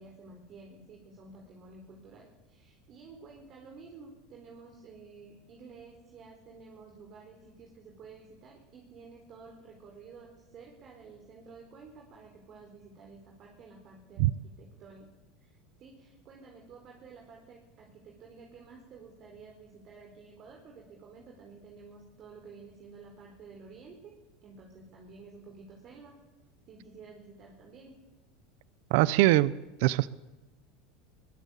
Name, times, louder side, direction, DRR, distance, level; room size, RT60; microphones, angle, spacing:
voice 1, 0.0-15.1 15.4-24.2 24.4-26.2 26.7-28.0, right 4 dB, 40° right, 0 dB, 4.4 m, -51 dB
voice 2, 28.9-29.5 29.8-30.1, right 17 dB, 70° right, 18 dB, 0.7 m, -22 dB
22.0 x 19.5 x 8.5 m, 1.1 s
supercardioid pair, 135°, 0 cm